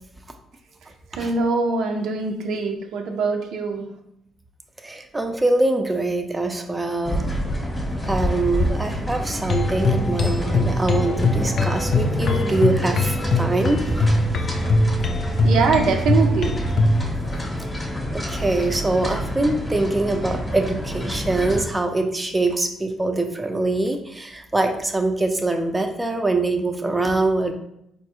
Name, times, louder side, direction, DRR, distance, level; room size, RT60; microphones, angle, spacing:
voice 1, 1.2-3.8 15.4-16.6, right 4 dB, 80° right, 3 dB, 0.5 m, -23 dB
voice 2, 4.8-7.3 8.1-14.0 18.1-27.5, right 2 dB, 15° right, 4 dB, 0.4 m, -23 dB
sound 1, 7.0-21.6, equal, 25° left, 0.7 m, -28 dB
sound 2, 9.5-17.0, left 2 dB, 60° left, 0.4 m, -22 dB
4.0 x 2.2 x 2.9 m, 0.79 s
cardioid pair, 90°, 0 cm